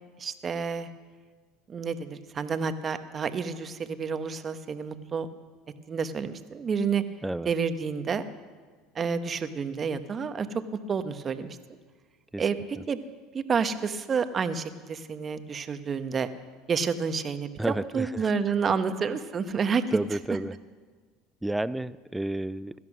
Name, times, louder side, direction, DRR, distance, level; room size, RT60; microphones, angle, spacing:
voice 1, 0.2-0.9 1.7-5.3 5.9-7.0 7.4-8.2 8.9-10.5 10.9-11.8 12.4-13.0 13.3-16.3 16.7-20.0, right 5 dB, 35° right, 10 dB, 1.1 m, -29 dB
voice 2, 17.6-18.3 19.9-20.5 21.4-22.7, right 1 dB, 10° right, 17 dB, 0.5 m, -31 dB
17.5 x 13.0 x 6.2 m, 1.5 s
supercardioid pair, 90°, 0 cm